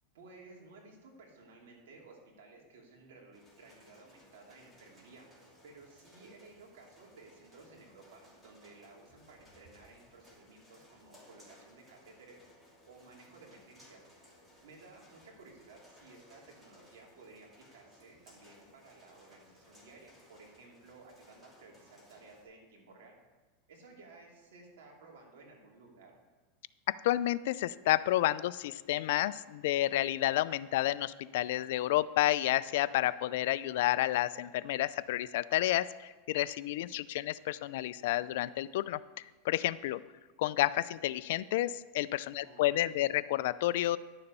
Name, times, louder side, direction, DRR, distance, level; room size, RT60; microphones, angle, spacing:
voice 1, 0.1-5.3 5.6-12.5 12.8-14.0 14.6-23.1 23.7-26.1 42.4-43.1, right 3 dB, 85° right, 0 dB, 2.8 m, -56 dB
sound 1, 3.3-22.4, left 1 dB, 5° right, 2.7 m, -61 dB
voice 2, 27.0-40.0 40.4-44.0, left 15 dB, 70° left, 17 dB, 0.4 m, -30 dB
10.5 x 6.9 x 5.4 m, 1.3 s
supercardioid pair, 140°, 0 cm